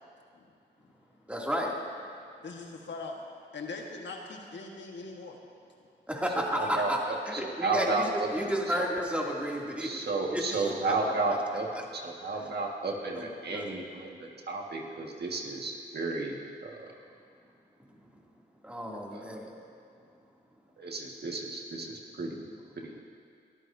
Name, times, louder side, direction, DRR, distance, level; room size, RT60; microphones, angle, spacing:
voice 1, 1.3-1.7 6.1-7.0 7.3-10.0 10.3-10.4 11.8-11.9 13.2-13.7 18.6-19.5, equal, 5° right, -3 dB, 2.6 m, -32 dB
voice 2, 2.4-3.2 3.5-5.4, left 3 dB, 75° left, 1 dB, 1.5 m, -41 dB
voice 3, 6.3-8.9 9.8-16.9 19.1-19.4 20.8-22.4 22.8-23.0, right 3 dB, 60° right, 0 dB, 1.8 m, -33 dB
22.0 x 14.0 x 2.7 m, 2.4 s
cardioid pair, 65°, 19 cm